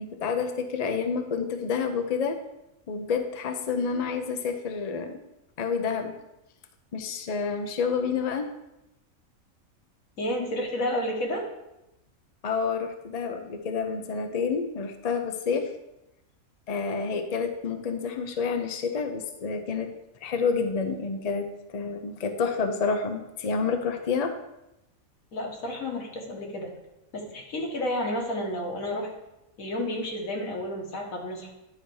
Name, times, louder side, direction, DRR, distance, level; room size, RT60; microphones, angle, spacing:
voice 1, 0.0-2.4 2.9-5.2 5.6-6.1 6.9-8.5 12.4-15.7 16.7-19.9 20.2-24.3, left 5 dB, 45° left, 6 dB, 0.5 m, -29 dB
voice 2, 10.2-11.5 25.3-26.7 27.1-29.1 29.6-31.5, left 1 dB, 75° left, 0 dB, 1.8 m, -31 dB
10.5 x 4.1 x 4.7 m, 0.90 s
omnidirectional pair, 1.5 m